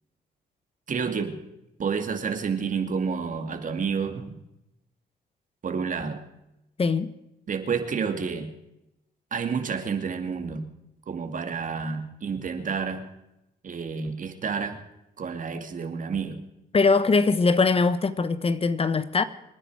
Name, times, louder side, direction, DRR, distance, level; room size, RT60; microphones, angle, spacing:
voice 1, 0.9-1.3 1.8-4.4 5.6-6.2 7.5-8.5 9.3-10.6 11.1-13.1 13.6-14.8 15.2-16.4, right 5 dB, 50° right, 2.4 m, -29 dB
voice 2, 6.8-7.1 16.7-19.2, left 4 dB, 35° left, 1.1 m, -22 dB
26.5 x 10.0 x 4.8 m
cardioid pair, 80°, 17 cm